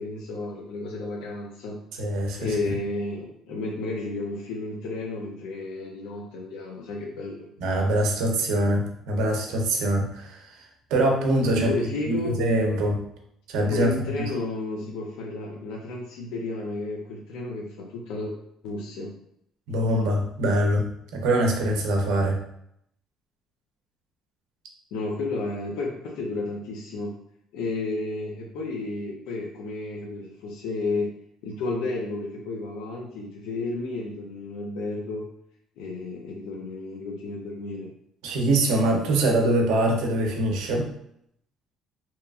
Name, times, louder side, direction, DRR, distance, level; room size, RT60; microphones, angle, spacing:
voice 1, 0.0-1.8 2.4-7.5 11.5-12.4 13.7-18.3 18.6-19.1 24.9-27.1 27.5-31.1 31.4-35.3 35.8-37.9, left 2 dB, 85° left, 0 dB, 0.4 m, -32 dB
voice 2, 2.0-2.6 7.6-10.6 10.9-11.7 12.1-13.0 13.5-13.9 19.7-22.4 38.2-40.9, right 1 dB, 85° right, 2 dB, 0.6 m, -23 dB
2.8 x 2.3 x 2.3 m, 0.74 s
cardioid pair, 175°, 0 cm